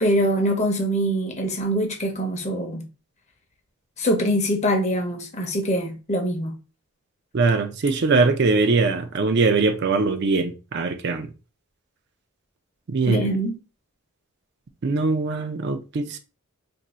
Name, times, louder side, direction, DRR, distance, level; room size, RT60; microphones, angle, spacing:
voice 1, 0.0-2.8 4.0-6.5 13.1-13.6, equal, 30° left, 0.7 m, -23 dB
voice 2, 7.3-11.3 12.9-13.4 14.8-16.2, right 3 dB, 50° right, 0.4 m, -21 dB
2.6 x 2.6 x 4.1 m
head